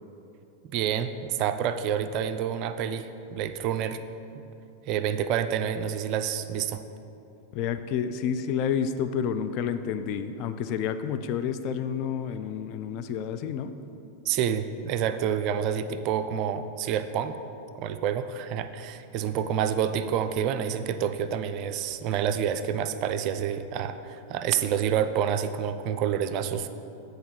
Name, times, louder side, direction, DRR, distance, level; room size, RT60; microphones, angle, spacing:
voice 1, 0.6-4.0 4.3-4.4 4.9-6.8 14.3-17.4 17.8-26.7, right 9 dB, 40° right, 10 dB, 0.4 m, -28 dB
voice 2, 7.5-13.8, left 7 dB, 40° left, 9 dB, 0.4 m, -29 dB
7.8 x 3.9 x 6.8 m, 2.8 s
figure-of-eight pair, 90°, 0 cm